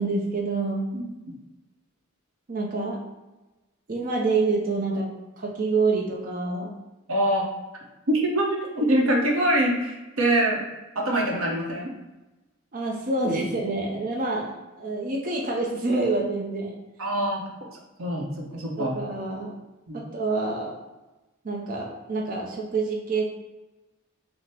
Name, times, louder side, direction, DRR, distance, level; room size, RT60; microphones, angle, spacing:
voice 1, 0.0-0.9 2.5-3.0 3.9-5.1 5.4-6.7 12.7-16.8 18.8-19.5 19.9-20.8 21.4-23.3, right 3 dB, 45° right, -2 dB, 0.6 m, -27 dB
voice 2, 0.9-1.3 7.1-7.4 8.1-10.6 10.9-11.9 17.0-17.4 18.0-19.0 19.9-20.0, right 1 dB, 85° right, 0 dB, 0.9 m, -24 dB
5.7 x 2.1 x 3.4 m, 1.1 s
head